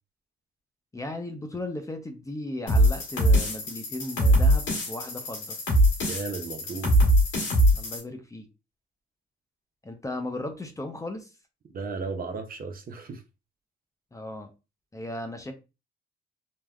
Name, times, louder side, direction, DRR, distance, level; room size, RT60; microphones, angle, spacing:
voice 1, 0.9-5.6 7.7-8.5 9.8-11.3 14.1-14.5 14.9-15.5, left 1 dB, 15° left, 0.5 m, -36 dB
sound 1, 2.7-8.0, equal, 85° left, 1.4 m, -22 dB
voice 2, 6.1-6.9 11.7-13.2, right 4 dB, 45° right, 0.6 m, -34 dB
3.4 x 2.1 x 2.3 m
cardioid pair, 90°, 20 cm